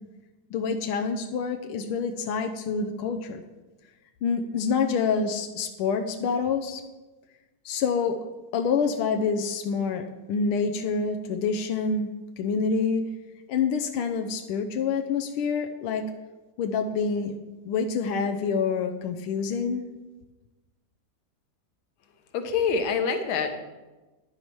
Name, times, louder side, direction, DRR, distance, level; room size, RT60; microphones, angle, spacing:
voice 1, 0.5-3.4 4.2-6.8 7.6-8.2 8.5-13.1 13.5-16.0 16.6-17.4 17.6-19.8, left 5 dB, 90° left, 5 dB, 1.6 m, -27 dB
voice 2, 22.3-23.5, left 5 dB, 70° left, 6 dB, 1.8 m, -25 dB
10.0 x 9.8 x 4.6 m, 1.2 s
omnidirectional pair, 2.3 m